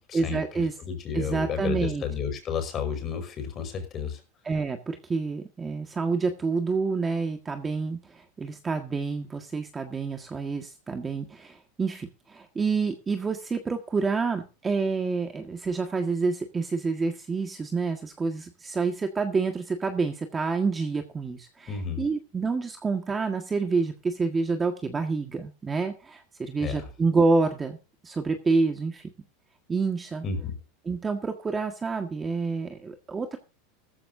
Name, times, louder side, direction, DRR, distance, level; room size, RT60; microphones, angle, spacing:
voice 1, 0.1-0.7 1.1-2.0 4.4-27.8 28.0-29.1 29.7-30.2 30.8-33.4, right 4 dB, 15° right, 5 dB, 1.6 m, -28 dB
voice 2, 0.8-4.2 21.7-22.0 26.6-26.9 30.2-30.5, left 6 dB, 30° left, 7 dB, 5.3 m, -31 dB
16.0 x 14.0 x 2.7 m, 0.31 s
supercardioid pair, 150°, 0 cm